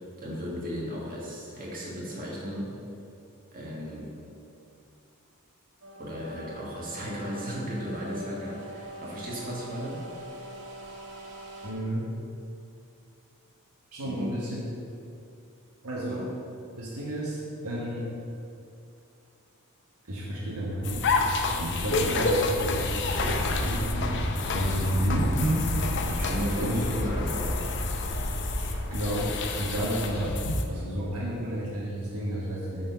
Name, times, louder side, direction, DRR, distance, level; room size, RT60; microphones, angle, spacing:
voice 1, 0.0-2.8 3.5-4.1 6.0-10.0 14.0-14.4 16.1-16.2 26.1-27.6, equal, 40° right, -4 dB, 1.7 m, -35 dB
sound 1, 5.8-11.7, equal, 75° right, 1.2 m, -43 dB
voice 2, 11.6-12.1 13.9-14.6 15.8-16.2 16.8-18.1 20.1-21.1 21.5-24.2 24.5-25.7 26.6-26.9 28.5-30.4 30.7-32.9, right 1 dB, 90° right, -6 dB, 1.4 m, -31 dB
sound 2, 20.8-30.6, left 2 dB, 55° left, 0.6 m, -28 dB
7.3 x 4.2 x 5.8 m, 2.6 s
head